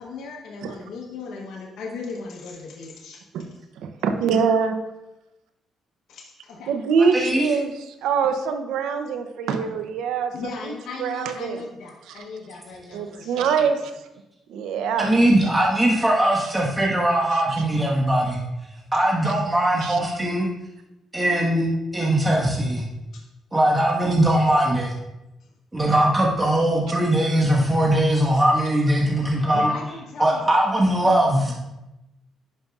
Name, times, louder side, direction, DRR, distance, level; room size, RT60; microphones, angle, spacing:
voice 1, 0.0-3.2 6.1-6.7 10.3-13.7 25.4-25.5 29.5-31.5, left 4 dB, 75° left, -1 dB, 1.0 m, -37 dB
voice 2, 3.8-4.8 6.7-10.3 10.6-10.7 11.0-11.6 12.1-12.2 12.9-13.9 14.5-15.1 17.3-17.6 19.8-20.0, right 6 dB, 85° right, 8 dB, 0.6 m, -24 dB
voice 3, 7.1-7.5 15.0-18.4 18.9-20.5 21.1-21.7 21.9-22.9 23.5-24.9 25.7-29.7 30.2-31.5, right 1 dB, 15° right, -3 dB, 1.3 m, -20 dB
10.5 x 5.2 x 2.4 m, 0.96 s
cardioid pair, 90°, 0 cm